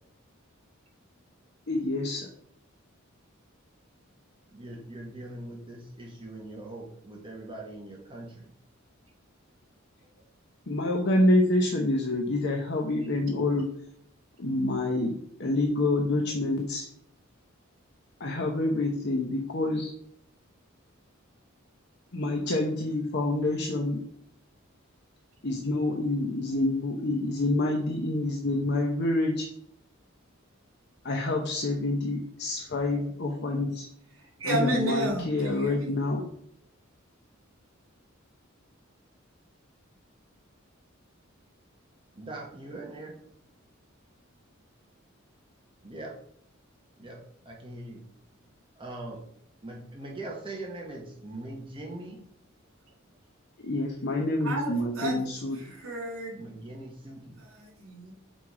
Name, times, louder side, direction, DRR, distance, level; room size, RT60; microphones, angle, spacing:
voice 1, 1.7-2.3 10.7-13.7 14.4-16.8 18.2-19.9 22.1-24.0 25.4-29.5 31.0-33.9 34.5-36.2 53.6-55.6, left 2 dB, 55° left, 1 dB, 0.8 m, -27 dB
voice 2, 4.5-8.5 42.1-43.2 45.8-46.2 47.0-48.1 48.7-49.3 49.6-52.2 56.3-57.4, right 2 dB, 25° right, -1 dB, 1.3 m, -41 dB
voice 3, 34.2-35.9 54.4-55.2 55.5-56.4 57.4-58.1, right 1 dB, 80° right, 0 dB, 2.7 m, -32 dB
6.1 x 4.5 x 4.8 m, 0.68 s
head